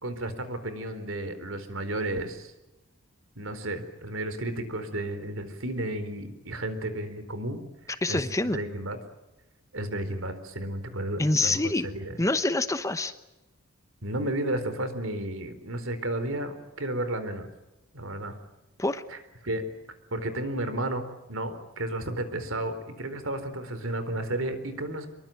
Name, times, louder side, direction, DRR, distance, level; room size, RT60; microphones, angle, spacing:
voice 1, 0.0-2.5 3.4-7.6 8.1-9.0 9.7-11.6 11.9-12.2 14.0-17.5 17.9-18.4 19.1-19.2 19.4-19.6 20.1-21.0 21.3-25.1, right 1 dB, 65° right, 10 dB, 4.0 m, -32 dB
voice 2, 8.0-8.6 11.2-11.9 12.2-13.1 18.8-19.0, left 2 dB, 15° left, 11 dB, 1.0 m, -26 dB
25.5 x 23.0 x 9.2 m, 0.98 s
head